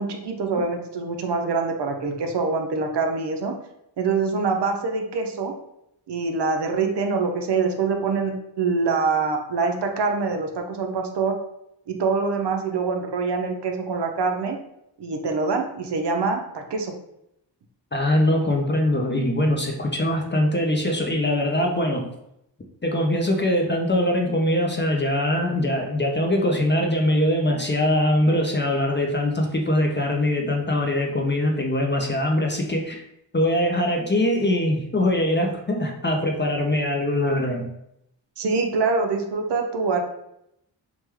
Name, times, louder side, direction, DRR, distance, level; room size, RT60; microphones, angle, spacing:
voice 1, 0.0-3.5 4.0-5.5 6.1-11.3 11.9-14.6 15.0-16.9 38.4-40.0, right 4 dB, 65° right, 4 dB, 0.6 m, -25 dB
voice 2, 17.9-22.1 22.8-33.0 33.3-37.7, left 1 dB, 25° left, 1 dB, 0.4 m, -22 dB
3.3 x 2.2 x 3.0 m, 0.80 s
wide cardioid pair, 100°, 45 cm